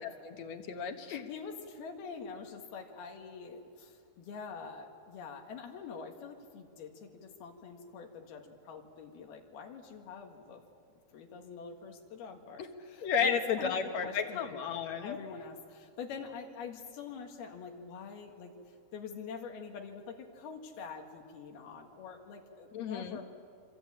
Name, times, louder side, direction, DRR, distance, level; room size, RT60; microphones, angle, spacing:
voice 1, 0.0-1.3 12.6-12.7 13.0-15.2 22.7-23.2, left 6 dB, 60° left, 6 dB, 2.2 m, -33 dB
voice 2, 1.3-10.6 11.1-13.8 14.0-14.5 15.0-18.5 18.9-23.2, left 6 dB, 85° left, 3 dB, 3.8 m, -45 dB
26.0 x 25.5 x 8.8 m, 2.3 s
omnidirectional pair, 4.3 m